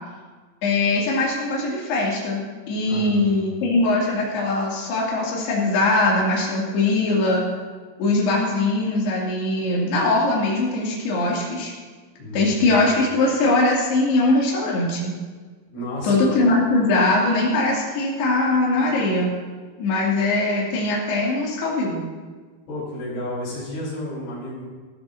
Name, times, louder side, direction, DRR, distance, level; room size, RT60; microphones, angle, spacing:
voice 1, 0.6-2.4 2.7-7.4 8.0-11.7 12.3-15.1 16.0-19.3 19.8-22.0, left 2 dB, 60° left, -5 dB, 4.7 m, -21 dB
voice 2, 2.9-3.5 12.2-12.9 15.7-16.2 22.7-24.6, left 1 dB, 85° left, -9 dB, 7.4 m, -32 dB
19.0 x 13.5 x 2.8 m, 1.4 s
omnidirectional pair, 5.4 m